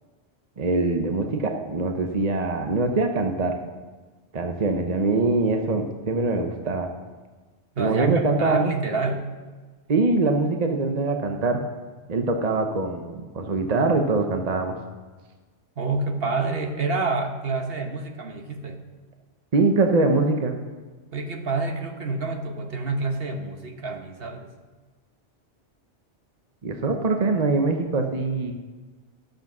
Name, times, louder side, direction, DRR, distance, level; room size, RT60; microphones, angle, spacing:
voice 1, 0.6-3.5 4.3-6.9 7.8-8.7 9.9-11.6 12.1-14.8 19.5-20.5 26.6-28.5, right 3 dB, 40° right, 4 dB, 0.9 m, -23 dB
voice 2, 7.7-9.3 15.8-18.8 21.1-24.5, right 3 dB, 55° right, 3 dB, 1.3 m, -28 dB
12.0 x 7.8 x 6.0 m, 1.3 s
omnidirectional pair, 1.2 m